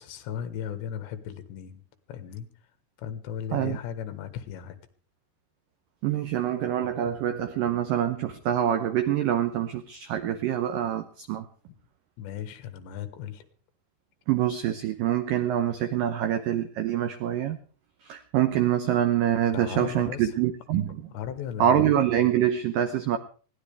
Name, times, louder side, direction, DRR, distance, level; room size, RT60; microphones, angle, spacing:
voice 1, 0.0-1.8 2.1-2.5 3.0-4.8 12.2-13.5 19.5-20.3 21.1-21.9, left 9 dB, 80° left, 10 dB, 3.5 m, -36 dB
voice 2, 6.0-11.5 14.3-17.6 18.0-21.0 21.6-23.2, right 10 dB, 85° right, 9 dB, 1.9 m, -25 dB
21.0 x 17.0 x 3.4 m, 0.41 s
omnidirectional pair, 5.1 m